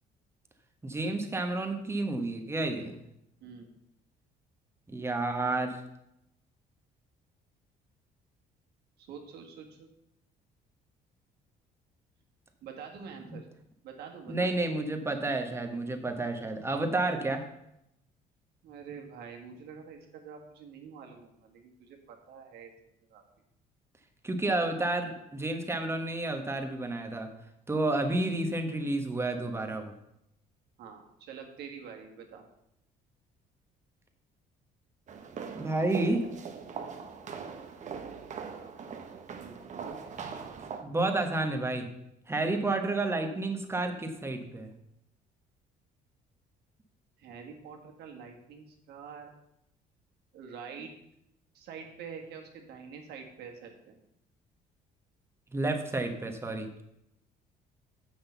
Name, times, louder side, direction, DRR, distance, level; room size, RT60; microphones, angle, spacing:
voice 1, 0.8-2.9 4.9-5.8 13.3-13.4 14.3-17.4 24.2-27.3 27.7-29.9 35.5-36.2 40.8-41.9 42.3-44.7 55.5-56.7, right 2 dB, 15° right, 5 dB, 1.3 m, -30 dB
voice 2, 9.0-9.9 12.6-13.4 13.8-14.5 18.6-22.7 23.1-23.2 30.8-32.4 39.4-40.0 47.2-49.3 50.3-50.9 51.5-54.0, right 6 dB, 75° right, 2 dB, 1.7 m, -46 dB
sound 1, 35.1-40.8, right 6 dB, 45° right, 1.0 m, -41 dB
6.3 x 6.1 x 6.9 m, 0.82 s
cardioid pair, 110°, 17 cm